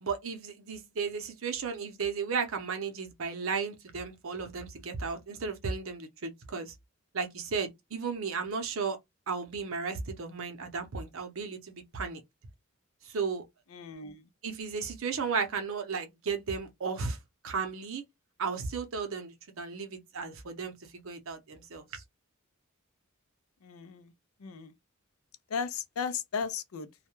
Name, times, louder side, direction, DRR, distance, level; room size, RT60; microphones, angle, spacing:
voice 1, 0.0-6.7 7.1-9.0 9.3-12.2 13.0-13.4 14.4-17.2 17.4-18.0 18.4-22.0, right 5 dB, 70° right, 0.6 m, -34 dB
voice 2, 13.7-14.3 23.6-24.1 24.4-24.7 25.5-26.9, left 6 dB, 80° left, 0.4 m, -36 dB
2.3 x 2.1 x 2.9 m
head